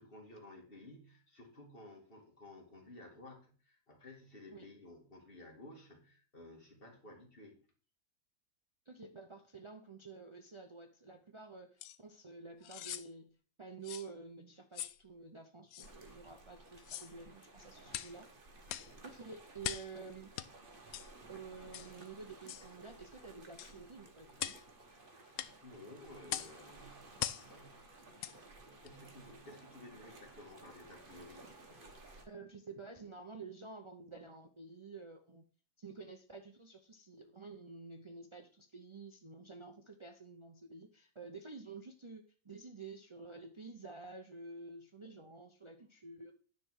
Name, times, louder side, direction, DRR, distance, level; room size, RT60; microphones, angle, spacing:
voice 1, 0.0-7.6 25.2-27.2 27.5-27.7 28.6-31.5, left 2 dB, 35° left, 1 dB, 2.3 m, -55 dB
voice 2, 8.9-18.3 19.0-20.3 21.3-24.5 32.2-35.5 35.8-46.3, right 4 dB, 50° right, 4 dB, 0.3 m, -50 dB
sound 1, 11.8-12.0 12.6-13.1 13.8-14.1 14.7-15.0 15.7-15.9 16.8-17.1 17.9-18.1 18.7-18.9 19.6-19.9 20.4-20.5 20.9-21.1 21.7-21.9 22.5-22.7 23.6-23.7 24.4-24.6 25.4-25.5 26.3-26.5 27.2-27.5 28.2-28.4 28.8-28.9, left 12 dB, 70° left, 0.9 m, -41 dB
sound 2, 15.8-32.3, right 2 dB, 35° right, 1.2 m, -57 dB
9.9 x 4.2 x 6.3 m, 0.41 s
omnidirectional pair, 1.8 m